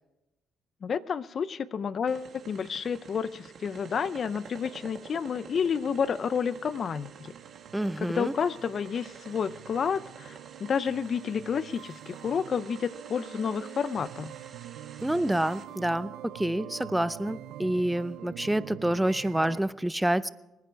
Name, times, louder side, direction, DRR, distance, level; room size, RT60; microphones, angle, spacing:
voice 1, 0.8-7.3 8.0-14.3, left 6 dB, 50° left, 17 dB, 0.5 m, -30 dB
sound 1, 2.1-15.6, right 6 dB, 55° right, 1.8 m, -49 dB
sound 2, 2.6-19.6, right 13 dB, 90° right, 0.5 m, -46 dB
voice 2, 7.7-8.3 15.0-20.3, right 1 dB, 5° right, 16 dB, 0.5 m, -28 dB
25.5 x 9.6 x 4.6 m, 0.99 s
cardioid pair, 90°, 0 cm